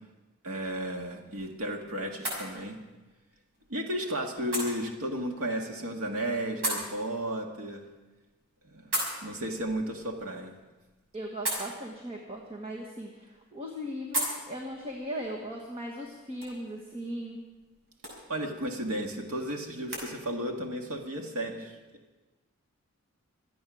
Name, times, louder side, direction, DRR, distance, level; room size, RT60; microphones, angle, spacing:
voice 1, 0.4-2.8 3.7-7.8 8.6-8.9 9.2-10.5 18.3-21.8, right 1 dB, 75° right, 2 dB, 1.8 m, -33 dB
sound 1, 0.6-20.1, right 1 dB, 55° right, 6.1 m, -40 dB
voice 2, 11.1-17.4, equal, 25° right, 0 dB, 1.4 m, -38 dB
25.5 x 8.6 x 6.2 m, 1.2 s
head